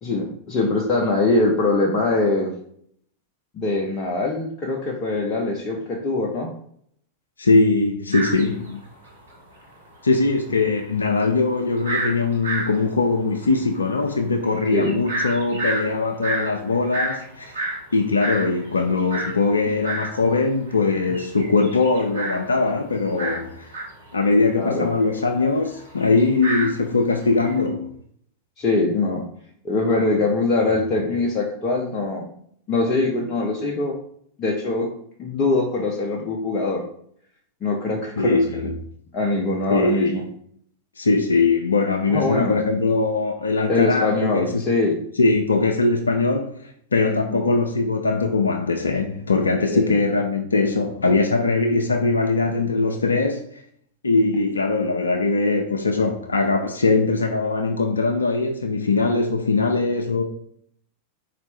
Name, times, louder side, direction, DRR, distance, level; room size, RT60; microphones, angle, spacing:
voice 1, 0.0-2.5 3.5-6.5 14.7-14.9 24.5-24.9 28.6-29.2 29.6-32.3 32.7-33.9 34.4-34.9 35.2-36.8 37.6-38.4 39.1-40.2 42.1-42.6 43.7-45.0 47.1-47.4 49.7-49.9, left 2 dB, 30° left, 0.6 m, -22 dB
voice 2, 7.4-8.8 10.0-17.5 17.9-23.7 24.1-28.0 38.2-38.8 39.7-40.1 41.0-44.6 45.2-53.6 54.0-60.2, left 3 dB, 75° left, 0.3 m, -21 dB
sound 1, 8.1-9.3 9.6-9.7 9.9-20.2 20.5-27.6, right 2 dB, 65° right, 0.8 m, -31 dB
4.2 x 2.4 x 3.2 m
figure-of-eight pair, 90°, 0 cm